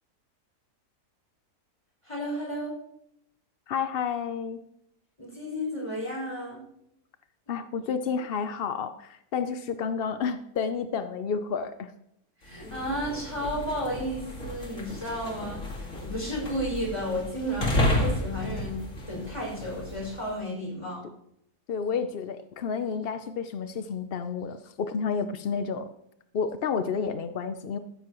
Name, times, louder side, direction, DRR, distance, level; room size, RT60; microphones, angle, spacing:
voice 1, 2.0-2.8 5.2-6.6 12.4-21.1, equal, 20° left, -2 dB, 5.7 m, -33 dB
voice 2, 3.7-4.6 7.5-11.9 21.7-25.9 26.3-27.8, left 6 dB, 65° left, 10 dB, 0.5 m, -30 dB
sound 1, 12.5-20.3, left 1 dB, 50° left, 2.6 m, -32 dB
14.5 x 13.5 x 3.0 m, 0.75 s
omnidirectional pair, 1.7 m